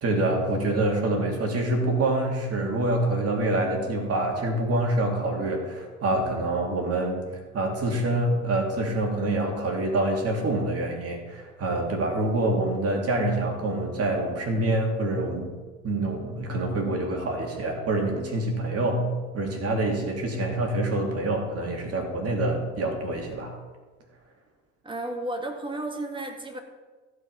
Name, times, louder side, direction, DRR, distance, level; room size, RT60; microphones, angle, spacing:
voice 1, 0.0-7.2 7.5-15.5 15.8-19.1 19.3-23.5, right 2 dB, 45° right, 2 dB, 2.5 m, -26 dB
voice 2, 24.8-26.6, right 1 dB, 15° right, 3 dB, 2.1 m, -33 dB
14.5 x 5.0 x 5.6 m, 1.3 s
hypercardioid pair, 65°, 34 cm